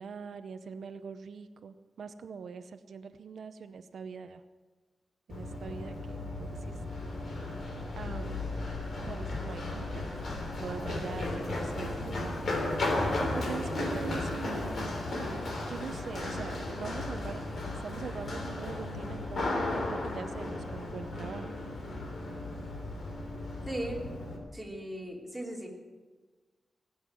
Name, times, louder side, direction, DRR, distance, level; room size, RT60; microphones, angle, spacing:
voice 1, 0.0-4.4 5.3-6.7 7.1-7.5 8.0-8.5 9.0-10.2 10.6-14.9 15.7-17.4 17.8-19.5 19.9-21.5, right 6 dB, 75° right, 9 dB, 0.7 m, -43 dB
Run, 5.3-24.4, left 2 dB, 65° left, 3.4 m, -35 dB
voice 2, 23.7-24.0 24.5-25.7, right 1 dB, ahead, -3 dB, 3.1 m, -37 dB
18.5 x 8.0 x 9.5 m, 1.4 s
wide cardioid pair, 145°, 0 cm